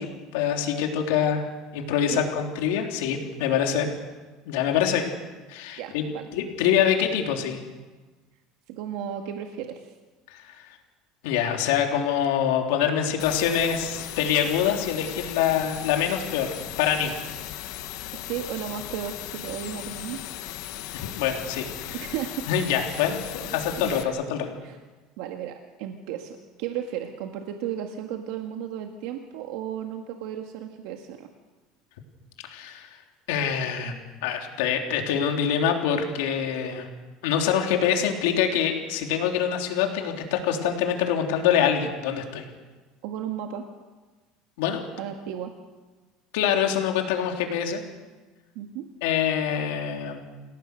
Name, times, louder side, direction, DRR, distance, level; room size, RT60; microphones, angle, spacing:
voice 1, 0.0-1.5 1.7-3.9 4.5-5.0 5.5-6.0 6.3-7.6 10.3-10.6 11.2-17.1 20.9-22.0 22.5-24.5 32.5-32.9 33.3-36.9 37.2-42.4 44.6-44.8 46.3-47.8 49.0-50.3, left 8 dB, 80° left, 3 dB, 3.4 m, -25 dB
voice 2, 5.8-6.2 8.7-9.9 18.1-20.2 21.9-22.5 22.9-23.0 23.4-24.1 24.6-24.8 25.2-31.3 43.0-43.7 45.0-45.5 48.6-48.9, right 9 dB, 65° right, 4 dB, 1.8 m, -34 dB
sound 1, 13.2-24.0, left 14 dB, 60° left, 1.4 m, -37 dB
29.0 x 17.5 x 6.7 m, 1.3 s
cardioid pair, 165°, 0 cm